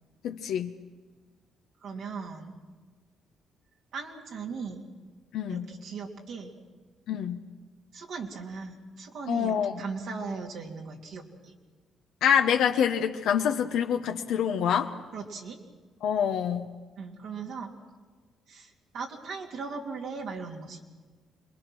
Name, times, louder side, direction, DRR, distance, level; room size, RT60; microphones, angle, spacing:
voice 1, 0.2-0.7 5.3-5.7 7.1-7.4 9.3-9.8 12.2-14.9 16.0-16.7, left 8 dB, 80° left, 4 dB, 1.0 m, -26 dB
voice 2, 1.8-2.6 3.9-4.8 5.5-6.5 7.9-11.5 15.1-15.6 17.0-17.7 18.5-20.8, right 4 dB, 75° right, 0 dB, 3.0 m, -38 dB
26.5 x 21.0 x 6.2 m, 1.4 s
cardioid pair, 80°, 0 cm